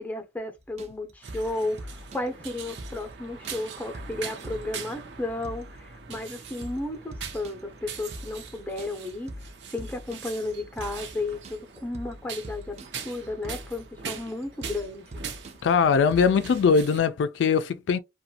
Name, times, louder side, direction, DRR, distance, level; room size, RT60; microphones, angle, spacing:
voice 1, 0.0-9.3 9.7-12.8 13.0-15.2, left 2 dB, 10° left, 0.6 m, -33 dB
sound 1, 0.6-16.8, equal, 35° right, 0.4 m, -44 dB
sound 2, 1.2-17.0, right 6 dB, 75° right, 0.6 m, -42 dB
voice 2, 15.6-18.0, left 5 dB, 85° left, 0.3 m, -21 dB
2.5 x 2.2 x 2.8 m
head